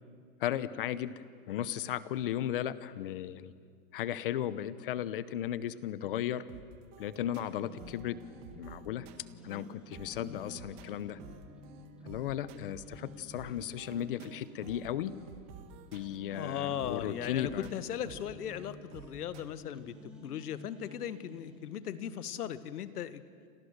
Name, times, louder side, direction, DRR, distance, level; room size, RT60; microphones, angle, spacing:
voice 1, 0.4-3.5 3.9-6.4 7.0-8.2 8.5-9.1 9.4-11.2 12.0-15.1 15.9-17.7, left 11 dB, 35° left, 16 dB, 0.7 m, -35 dB
sound 1, 6.5-19.4, right 6 dB, 30° right, 1.7 m, -53 dB
sound 2, 7.3-22.4, left 1 dB, ahead, 2.2 m, -51 dB
voice 2, 16.3-20.0 20.2-23.2, left 10 dB, 85° left, 12 dB, 1.6 m, -38 dB
28.5 x 26.5 x 6.6 m, 2.1 s
supercardioid pair, 170°, 45 cm